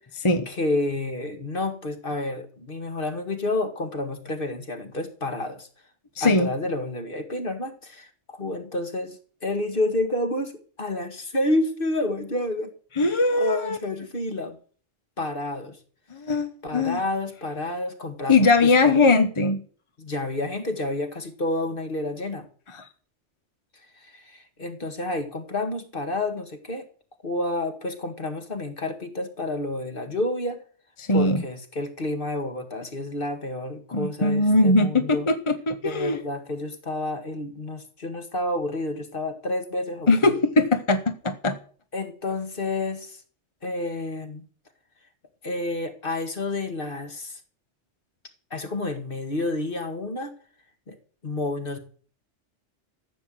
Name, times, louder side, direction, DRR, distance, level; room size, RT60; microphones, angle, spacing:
voice 1, 0.5-5.7 6.2-12.7 13.3-14.6 15.2-15.8 16.6-19.0 20.0-22.5 24.0-26.9 27.2-30.6 31.1-35.3 35.8-40.4 41.9-43.2 43.6-44.5 45.4-47.4 48.5-50.3 50.9-51.0 51.2-51.8, left 2 dB, 45° left, 7 dB, 2.0 m, -29 dB
voice 2, 6.2-6.5 13.0-13.8 16.1-17.0 18.3-19.6 22.7-22.9 31.0-31.4 33.9-36.2 40.1-41.6, left 2 dB, 25° left, 9 dB, 0.9 m, -21 dB
14.5 x 8.6 x 7.7 m, 0.44 s
omnidirectional pair, 1.3 m